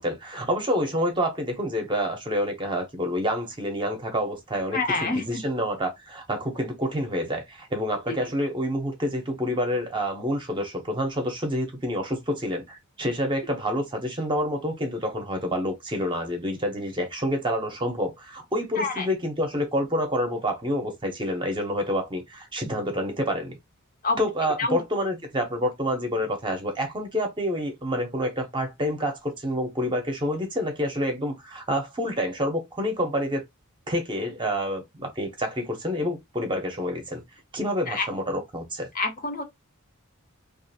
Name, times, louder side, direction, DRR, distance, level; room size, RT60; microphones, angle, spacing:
voice 1, 0.0-23.6 24.2-33.4 33.9-37.2 37.5-38.9, equal, 20° right, 0.6 m, -28 dB
voice 2, 4.7-5.4 18.8-19.1 24.0-24.2 24.6-24.8 37.9-38.1 39.0-39.4, left 3 dB, 40° left, 0.6 m, -26 dB
2.4 x 2.4 x 2.7 m
head